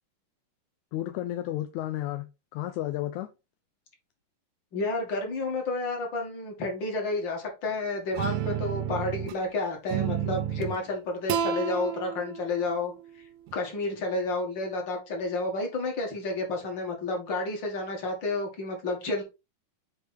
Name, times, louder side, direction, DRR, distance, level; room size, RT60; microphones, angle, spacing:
voice 1, 0.9-3.3, left 14 dB, 80° left, 1.7 m, -32 dB
voice 2, 4.7-12.9 13.5-19.2, left 2 dB, 35° left, 2.5 m, -30 dB
sound 1, 8.1-9.4 9.9-10.8 11.3-13.5, right 9 dB, 80° right, 2.4 m, -31 dB
8.7 x 3.9 x 4.3 m
omnidirectional pair, 3.9 m